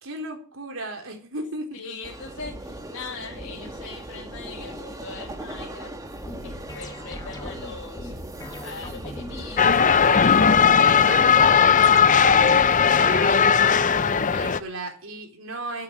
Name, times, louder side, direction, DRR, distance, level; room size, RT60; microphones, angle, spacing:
voice 1, 0.0-1.7 11.1-13.5 13.9-15.8, right 2 dB, 70° right, 3 dB, 4.0 m, -34 dB
voice 2, 1.7-5.9 6.3-8.1 8.6-10.4 10.8-11.5 14.1-14.5, left 4 dB, 75° left, 0 dB, 2.1 m, -40 dB
sound 1, 2.0-11.7, right 1 dB, 15° right, 1.5 m, -38 dB
sound 2, 6.3-13.1, left 1 dB, 20° left, 1.3 m, -40 dB
sound 3, 9.6-14.6, left 6 dB, 35° left, 0.6 m, -17 dB
9.7 x 8.3 x 9.7 m, 0.43 s
head